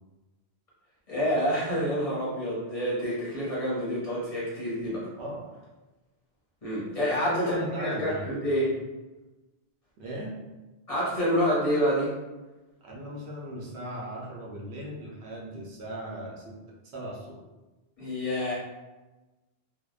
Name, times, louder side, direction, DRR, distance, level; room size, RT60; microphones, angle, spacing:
voice 1, 1.1-5.1 6.6-8.7 10.9-12.1 18.0-18.5, equal, 35° left, -8 dB, 0.8 m, -28 dB
voice 2, 7.0-8.2 10.0-10.4 12.8-16.6 16.9-17.4, right 1 dB, 80° right, -3 dB, 0.9 m, -37 dB
2.7 x 2.0 x 2.3 m, 1.1 s
omnidirectional pair, 1.1 m